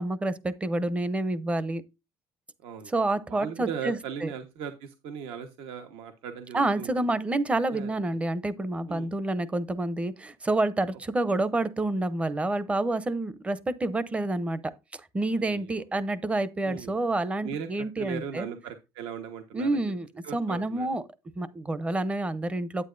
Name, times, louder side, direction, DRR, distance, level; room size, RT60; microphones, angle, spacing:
voice 1, 0.0-1.8 2.9-4.3 6.5-18.5 19.5-20.1 20.3-21.0 21.4-22.8, right 2 dB, 15° right, 0.7 m, -28 dB
voice 2, 2.6-2.9 3.3-7.1 7.7-7.9 8.8-9.1 15.3-15.8 16.6-17.0 17.4-19.8 20.2-20.9, right 7 dB, 70° right, 1.3 m, -38 dB
9.7 x 9.0 x 2.6 m
cardioid pair, 155°, 10 cm